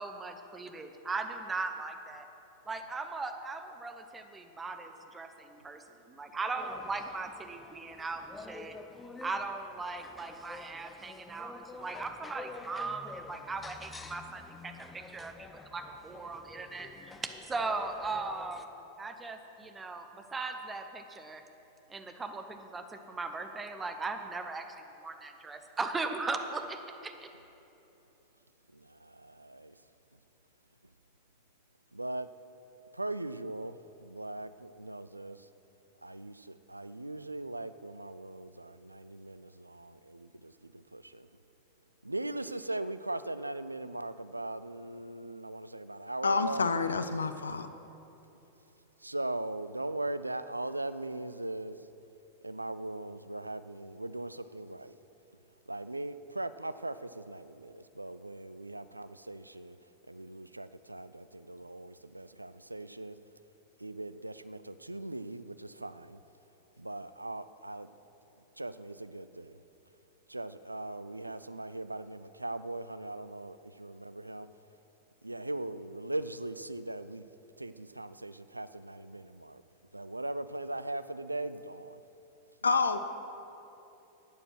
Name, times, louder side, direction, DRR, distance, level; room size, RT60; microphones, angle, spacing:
voice 1, 0.0-2.3 2.7-8.8 9.2-21.4 21.9-24.7 25.0-27.3, right 3 dB, 15° right, 7 dB, 0.8 m, -38 dB
sound 1, 6.6-18.6, left 3 dB, 15° left, 0.6 m, -49 dB
voice 2, 28.7-29.8 31.9-32.3 32.9-33.8 34.0-35.5 36.0-41.3 42.0-46.7 49.0-51.9 52.4-55.0 55.7-59.8 60.1-63.2 63.8-66.2 66.8-67.9 68.6-69.6 70.3-74.5 75.2-77.2 77.6-79.6 79.9-82.0, right 2 dB, 85° right, 14 dB, 0.3 m, -39 dB
voice 3, 46.2-47.7 82.6-83.0, left 4 dB, 75° left, 10 dB, 0.4 m, -28 dB
12.0 x 8.9 x 6.2 m, 2.9 s
figure-of-eight pair, 90°, 0 cm